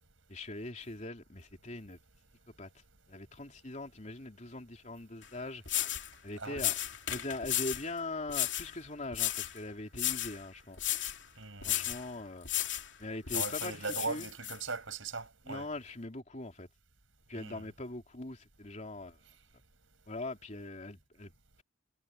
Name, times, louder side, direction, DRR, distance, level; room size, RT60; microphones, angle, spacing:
voice 1, 0.3-2.0 2.6-2.7 3.1-5.8 6.2-6.7 7.1-10.8 11.6-12.5 13.0-14.3 15.5-16.7 17.3-19.2 20.1-21.3, left 2 dB, 40° left, 3.5 m, -41 dB
sound 1, 5.2-5.3 5.7-6.1 6.6-7.9 8.3-8.7 9.1-9.6 9.9-10.4 10.8-11.2 11.6-12.0 12.5-12.9 13.3-14.6, left 13 dB, 65° left, 3.1 m, -34 dB
voice 2, 6.4-6.7 11.4-11.9 13.3-15.7 17.3-17.6, right 4 dB, 90° right, 5.2 m, -39 dB
head